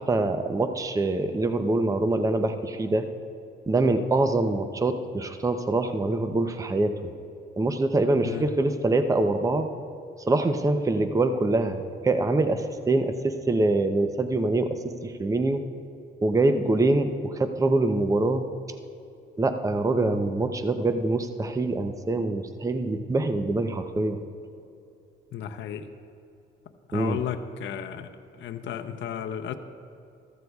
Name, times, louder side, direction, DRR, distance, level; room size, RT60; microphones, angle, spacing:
voice 1, 0.0-3.1 3.7-6.9 7.6-9.7 10.3-15.6 16.2-18.4 19.4-24.2 26.9-27.2, right 2 dB, 15° right, 8 dB, 0.6 m, -24 dB
voice 2, 25.3-25.9 26.9-29.5, left 9 dB, 70° left, 7 dB, 0.6 m, -34 dB
14.0 x 14.0 x 2.4 m, 2.7 s
cardioid pair, 90°, 20 cm